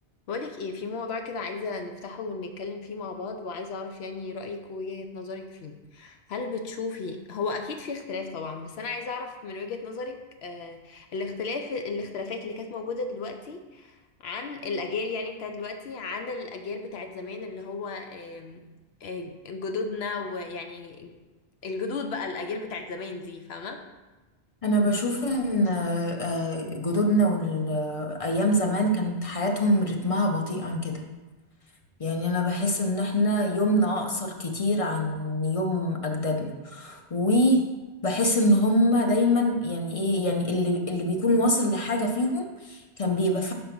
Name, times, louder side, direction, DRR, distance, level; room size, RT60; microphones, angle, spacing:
voice 1, 0.3-18.7 19.0-21.2 21.6-23.8, left 4 dB, 80° left, 5 dB, 0.9 m, -34 dB
voice 2, 24.6-31.0 32.0-37.6 38.0-43.5, left 1 dB, 35° left, 3 dB, 0.8 m, -25 dB
5.2 x 5.0 x 5.9 m, 1.2 s
omnidirectional pair, 1.1 m